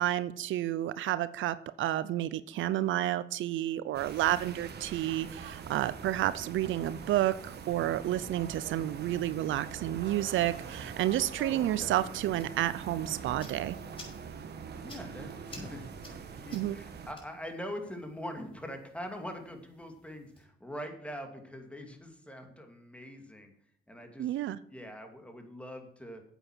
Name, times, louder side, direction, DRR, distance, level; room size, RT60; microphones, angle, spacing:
voice 1, 0.0-13.8 16.5-16.8 24.2-24.6, right 13 dB, 75° right, 16 dB, 0.6 m, -30 dB
sound 1, 3.9-17.1, right 6 dB, 55° right, 1.4 m, -44 dB
voice 2, 11.3-12.0 14.8-15.9 16.4-23.5 23.9-24.3 24.7-26.2, equal, 5° left, 4 dB, 2.3 m, -43 dB
sound 2, 13.0-20.4, left 2 dB, 25° left, 5.6 m, -55 dB
9.1 x 8.2 x 6.1 m, 0.69 s
cardioid pair, 90°, 20 cm